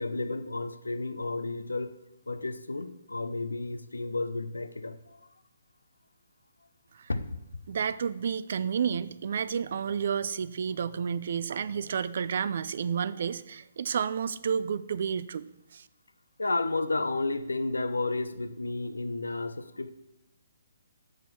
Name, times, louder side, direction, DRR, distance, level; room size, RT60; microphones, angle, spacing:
voice 1, 0.0-2.0 2.3-5.2 7.1-7.4 16.4-19.9, left 2 dB, 85° left, 12 dB, 0.6 m, -32 dB
voice 2, 7.7-15.9, right 7 dB, 55° right, 16 dB, 0.4 m, -31 dB
6.9 x 6.3 x 5.9 m, 0.88 s
figure-of-eight pair, 140°, 0 cm